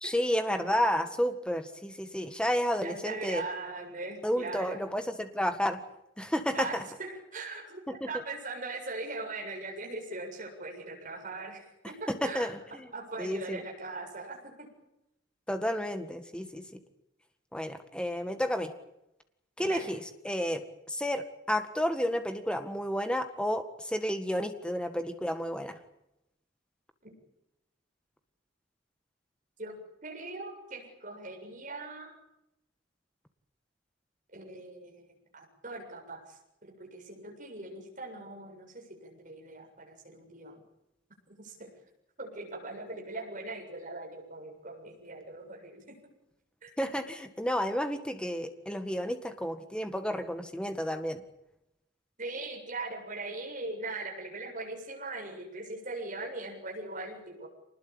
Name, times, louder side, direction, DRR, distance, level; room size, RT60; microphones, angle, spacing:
voice 1, 0.0-3.4 4.2-5.8 6.2-6.8 12.2-12.9 13.2-13.6 15.5-16.6 17.5-18.7 19.6-20.0 20.2-20.6 20.9-25.8 46.8-51.2, equal, 5° left, 8 dB, 1.8 m, -31 dB
voice 2, 2.7-4.8 6.5-12.5 12.9-14.7 19.6-19.9 27.0-27.1 29.6-29.8 30.0-32.2 34.3-40.6 41.4-41.7 42.2-46.0 46.6-46.7 52.2-57.5, right 2 dB, 40° right, 0 dB, 7.5 m, -40 dB
25.5 x 20.0 x 8.7 m, 0.85 s
head